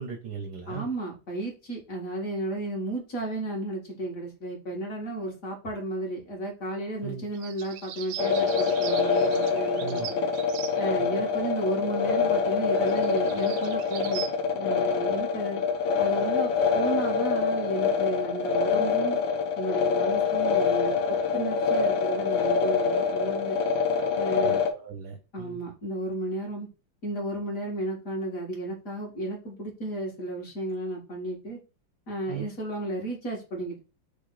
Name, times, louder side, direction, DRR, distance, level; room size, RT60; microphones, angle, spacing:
voice 1, 0.0-0.9 7.0-7.2 9.8-10.3 11.0-11.2 24.4-25.6 32.3-32.5, right 7 dB, 65° right, 4 dB, 1.1 m, -38 dB
voice 2, 0.7-10.3 10.8-14.2 14.5-15.6 16.0-19.2 19.6-23.6 24.1-24.6 25.3-26.7 27.0-31.6 32.1-33.8, right 1 dB, 45° left, -1 dB, 1.6 m, -33 dB
sound 1, 7.3-10.9 12.5-12.6 12.9-14.3, right 11 dB, 80° right, 1.4 m, -40 dB
sound 2, 8.2-24.7, left 5 dB, 65° left, 1.4 m, -25 dB
3.9 x 3.5 x 3.7 m, 0.31 s
omnidirectional pair, 2.3 m